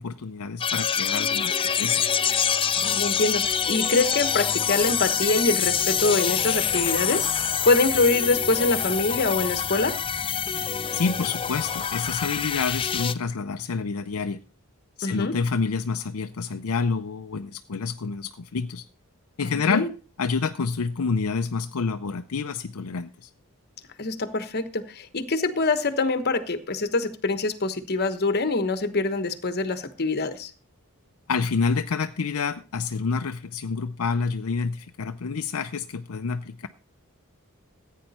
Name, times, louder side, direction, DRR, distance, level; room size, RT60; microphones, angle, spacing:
voice 1, 0.0-2.0 10.9-14.4 15.0-18.8 19.4-19.9 20.2-23.3 31.3-36.7, left 5 dB, 70° left, 8 dB, 0.6 m, -28 dB
sound 1, 0.6-13.1, left 8 dB, 25° left, 0.5 m, -26 dB
voice 2, 2.7-9.9 15.0-15.3 19.4-19.9 24.0-30.5, left 3 dB, 45° left, 11 dB, 1.2 m, -25 dB
15.0 x 9.1 x 4.2 m, 0.36 s
head